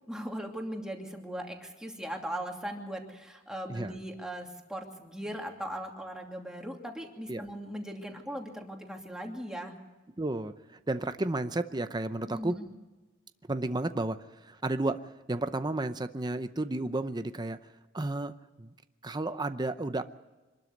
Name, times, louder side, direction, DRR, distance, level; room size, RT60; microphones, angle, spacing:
voice 1, 0.1-9.7 12.3-12.7, right 1 dB, 5° right, 1 dB, 2.7 m, -39 dB
voice 2, 10.2-12.6 13.5-17.6 17.9-18.3 18.6-18.7 19.0-20.0, right 2 dB, 20° right, 10 dB, 0.7 m, -32 dB
25.5 x 12.5 x 9.3 m, 1.2 s
head